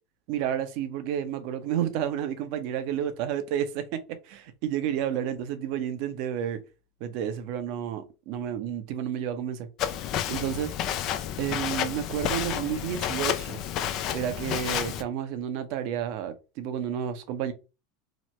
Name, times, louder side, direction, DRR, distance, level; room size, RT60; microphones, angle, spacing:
voice 1, 0.3-6.6 7.0-9.7 10.3-10.7 11.4-13.6 14.1-17.5, right 9 dB, 60° right, 0.6 m, -31 dB
Walk footsteps, 9.8-15.0, left 10 dB, 50° left, 0.4 m, -30 dB
2.9 x 2.1 x 3.1 m
hypercardioid pair, 95°, 0 cm